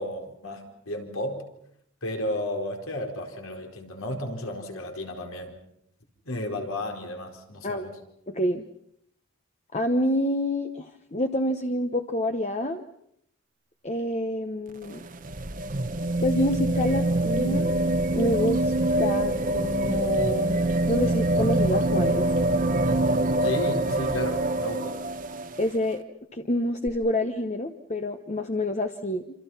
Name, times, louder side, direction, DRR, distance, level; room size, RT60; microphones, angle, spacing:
voice 1, 0.0-1.5 2.0-5.6 6.2-8.0 23.4-25.0, left 1 dB, 85° left, 3 dB, 4.6 m, -33 dB
voice 2, 8.3-8.6 9.7-12.8 13.8-15.0 16.2-17.7 18.1-18.7 19.0-20.6 20.9-22.2 25.6-26.0 26.3-29.2, left 1 dB, 30° left, 5 dB, 1.0 m, -27 dB
sound 1, 14.7-25.7 26.9-27.0, right 1 dB, 40° right, 1.1 m, -25 dB
27.0 x 27.0 x 5.7 m, 0.72 s
head